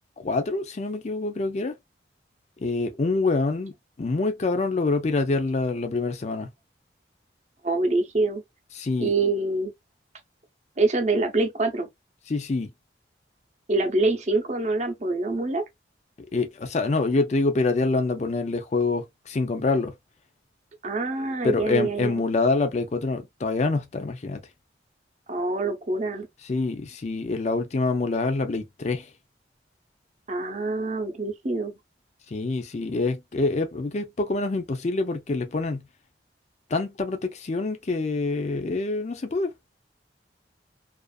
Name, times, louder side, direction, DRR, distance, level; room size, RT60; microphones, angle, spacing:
voice 1, 0.2-1.7 2.6-3.7 4.0-6.5 8.7-9.1 12.3-12.7 16.3-19.9 21.4-24.4 26.4-29.1 32.3-35.9 36.7-39.5, left 3 dB, 40° left, 0.5 m, -26 dB
voice 2, 7.6-8.4 9.0-9.7 10.8-11.9 13.7-15.6 20.8-22.2 25.3-26.3 30.3-31.8, right 2 dB, 40° right, 0.7 m, -25 dB
2.5 x 2.4 x 2.3 m
head